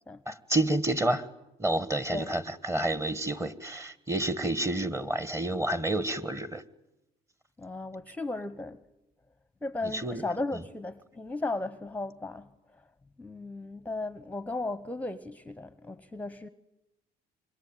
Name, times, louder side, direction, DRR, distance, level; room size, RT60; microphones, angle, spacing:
voice 1, 0.3-1.3 1.6-6.6 9.9-10.2, right 1 dB, 15° right, 1.6 m, -29 dB
voice 2, 7.6-8.8 9.6-12.8 13.2-16.5, left 2 dB, 10° left, 0.9 m, -36 dB
26.5 x 24.0 x 9.1 m
cardioid pair, 110°, 17 cm